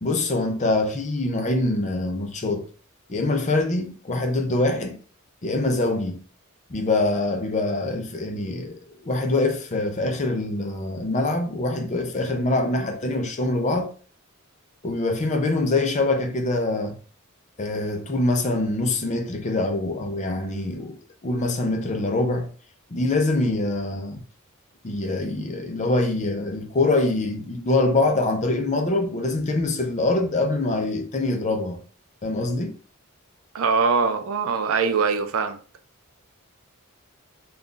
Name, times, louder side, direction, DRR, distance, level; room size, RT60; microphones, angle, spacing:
voice 1, 0.0-2.7 3.1-5.0 5.4-6.2 6.7-8.8 9.0-13.9 14.8-17.0 17.6-21.0 21.2-22.5 22.9-24.2 24.8-31.8 32.2-32.8, left 2 dB, 35° left, 0.5 m, -24 dB
voice 2, 33.5-35.6, right 5 dB, 70° right, 0.4 m, -22 dB
2.5 x 2.3 x 3.6 m
head